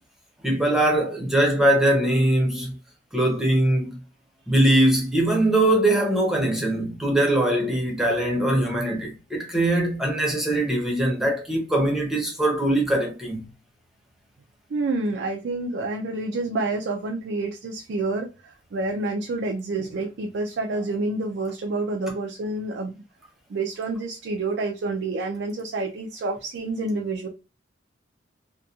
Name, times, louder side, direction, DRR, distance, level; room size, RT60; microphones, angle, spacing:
voice 1, 0.4-2.7 3.1-4.0 4.5-13.5, right 1 dB, 5° right, 0.7 m, -21 dB
voice 2, 14.7-23.0 23.5-27.3, right 2 dB, 75° right, 0.4 m, -28 dB
2.8 x 2.2 x 2.3 m
head